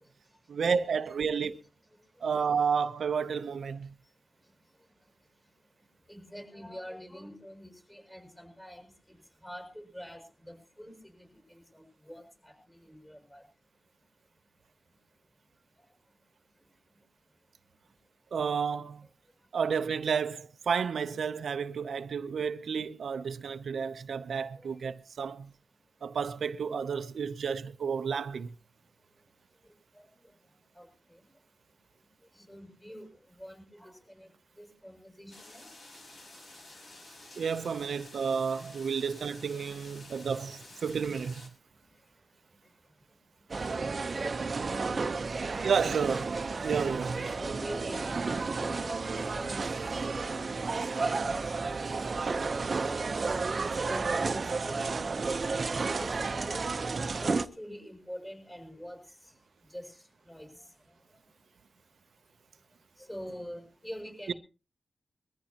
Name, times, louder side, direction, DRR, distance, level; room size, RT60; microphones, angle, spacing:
voice 1, 0.5-1.6 2.2-3.9 18.3-19.1 19.5-25.5 26.0-28.5 37.4-41.5 45.6-46.2 46.6-47.2 64.3-64.4, right 6 dB, 85° right, 0.6 m, -31 dB
voice 2, 6.1-9.2 9.4-10.9 11.2-13.4 24.6-24.7 30.0-30.1 30.8-30.9 32.3-33.1 33.4-34.3 34.6-35.7 37.8-37.9 39.2-39.7 43.5-43.8 44.1-45.0 45.4-46.2 47.0-49.6 50.2-50.5 50.7-53.0 53.5-55.3 55.9-56.7 57.2-59.0 59.7-59.9 60.3-60.7 63.0-64.3, equal, 15° left, 6.4 m, -45 dB
sound 1, 35.3-41.5, left 2 dB, 65° left, 4.3 m, -51 dB
sound 2, 43.5-57.4, right 4 dB, 50° right, 0.8 m, -32 dB
22.0 x 14.5 x 2.9 m
wide cardioid pair, 90°, 0 cm